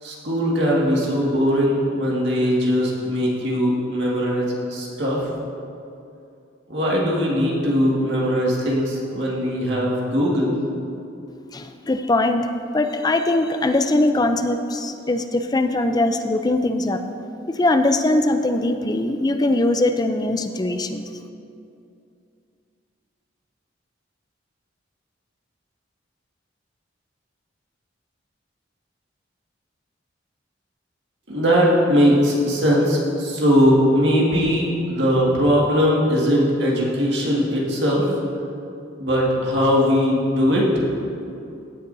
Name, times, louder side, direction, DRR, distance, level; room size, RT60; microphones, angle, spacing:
voice 1, 0.0-5.3 6.7-10.5 31.3-38.1 39.0-40.8, equal, 65° right, -4 dB, 1.9 m, -20 dB
voice 2, 11.5-12.5 12.7-17.0 17.5-21.0, left 2 dB, 20° left, 7 dB, 0.4 m, -21 dB
16.0 x 8.2 x 2.7 m, 2.6 s
head